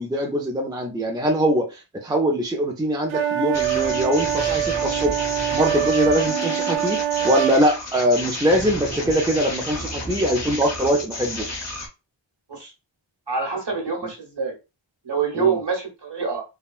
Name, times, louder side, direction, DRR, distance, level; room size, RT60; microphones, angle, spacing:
voice 1, 0.0-5.2 5.5-11.5 15.4-15.6, equal, 10° right, 0.5 m, -22 dB
sound 1, 3.1-7.6, right 11 dB, 80° right, 0.6 m, -24 dB
sound 2, 3.5-11.9, left 1 dB, 35° left, 1.1 m, -31 dB
voice 2, 13.3-14.5 15.0-16.4, right 5 dB, 55° right, 1.4 m, -26 dB
3.5 x 2.2 x 2.4 m
wide cardioid pair, 70°, 48 cm